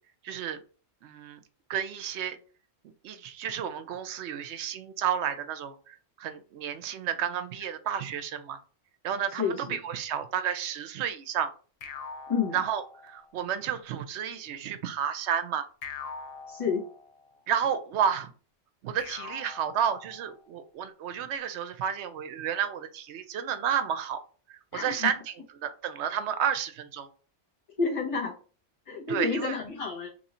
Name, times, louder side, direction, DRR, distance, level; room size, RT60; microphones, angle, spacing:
voice 1, 0.2-0.6 1.0-1.4 1.7-2.4 3.0-8.6 9.0-11.5 12.5-15.7 17.5-18.3 18.8-24.2 24.5-25.2 25.6-27.1 29.1-29.5, right 8 dB, 75° right, 10 dB, 0.8 m, -31 dB
voice 2, 9.3-9.8 12.3-12.6 16.5-16.8 24.7-25.1 27.8-28.3 28.9-30.1, left 5 dB, 30° left, -3 dB, 1.1 m, -29 dB
sound 1, 11.8-13.4 15.8-17.4 19.0-20.5, left 5 dB, 75° left, 0.3 m, -43 dB
3.0 x 2.6 x 4.2 m, 0.39 s
omnidirectional pair, 1.2 m